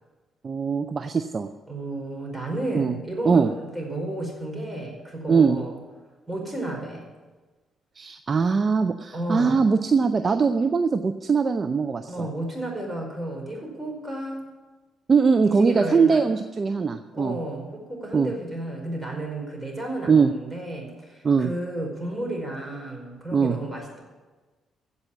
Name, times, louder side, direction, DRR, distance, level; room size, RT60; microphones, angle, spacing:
voice 1, 0.4-1.5 2.7-2.9 3.3-3.5 5.3-5.6 8.0-12.1 15.1-17.4 18.1-18.3 20.1-20.3 21.2-21.5 23.3-23.6, right 5 dB, 40° right, 9 dB, 0.6 m, -21 dB
voice 2, 1.7-5.7 6.3-7.1 9.1-9.6 12.1-14.4 15.4-16.2 17.1-24.0, right 1 dB, 10° right, 0 dB, 5.1 m, -32 dB
16.0 x 5.6 x 9.8 m, 1.3 s
figure-of-eight pair, 45°, 0 cm